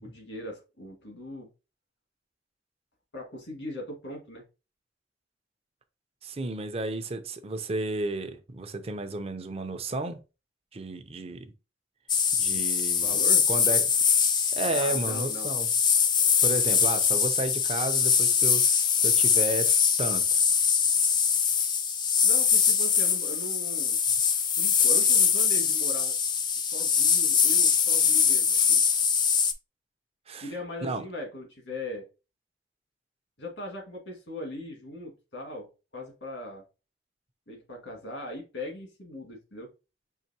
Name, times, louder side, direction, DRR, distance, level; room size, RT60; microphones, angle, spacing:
voice 1, 0.0-1.5 3.1-4.4 12.5-12.6 12.9-13.5 14.7-15.5 22.2-24.0 24.6-26.2 26.7-28.8 30.4-32.1 33.4-36.6 37.5-39.7, left 1 dB, 85° left, 2.0 m, -39 dB
voice 2, 6.2-10.2 10.7-11.5 12.4-13.2 13.5-13.9 14.5-15.7 16.4-19.7 20.0-20.4 30.3-30.5 30.8-31.0, right 2 dB, 35° right, 0.6 m, -32 dB
sound 1, 12.1-29.5, left 6 dB, 25° left, 0.4 m, -23 dB
5.6 x 3.1 x 2.8 m
head